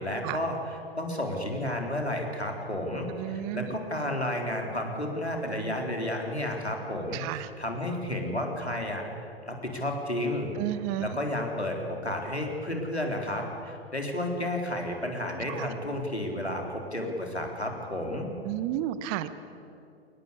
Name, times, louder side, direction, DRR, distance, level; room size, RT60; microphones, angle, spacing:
voice 1, 0.0-9.0 9.5-10.6 11.0-16.6 16.9-18.3, left 1 dB, 90° left, 2 dB, 3.8 m, -32 dB
voice 2, 3.1-3.7 7.1-7.5 10.6-11.2 15.5-15.7 18.4-19.3, right 13 dB, 35° right, 13 dB, 1.2 m, -32 dB
22.5 x 19.5 x 8.4 m, 2.7 s
figure-of-eight pair, 100°, 32 cm